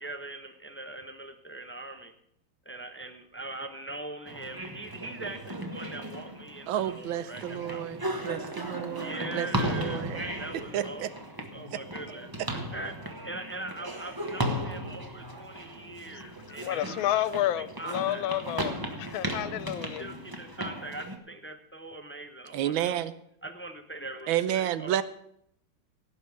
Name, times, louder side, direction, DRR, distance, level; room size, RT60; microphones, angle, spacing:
voice 1, 0.0-2.1 2.6-7.8 8.1-8.2 9.0-11.1 11.5-17.2 17.8-18.4 19.8-23.0 23.4-25.0, right 2 dB, 15° left, 0.4 m, -41 dB
sound 1, 4.2-21.2, equal, 15° right, 1.0 m, -36 dB
voice 2, 6.7-10.2 10.5-11.1 22.5-23.1 24.3-25.0, right 11 dB, 80° right, 1.5 m, -31 dB
voice 3, 16.6-20.0, left 12 dB, 80° left, 1.4 m, -30 dB
17.0 x 5.6 x 8.3 m
omnidirectional pair, 2.2 m